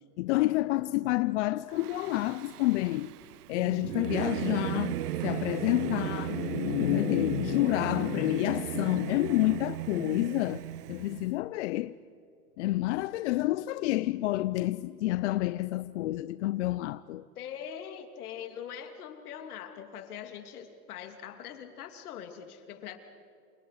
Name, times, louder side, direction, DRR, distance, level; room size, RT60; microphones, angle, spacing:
voice 1, 0.2-3.1 3.5-10.6 10.9-11.9 12.6-17.2, left 17 dB, 50° left, 0.6 m, -29 dB
Singing / Musical instrument, 1.7-11.3, right 13 dB, 75° right, 0.9 m, -36 dB
voice 2, 17.4-23.0, left 9 dB, 70° left, 2.8 m, -42 dB
28.5 x 26.5 x 4.9 m
hypercardioid pair, 135°, 46 cm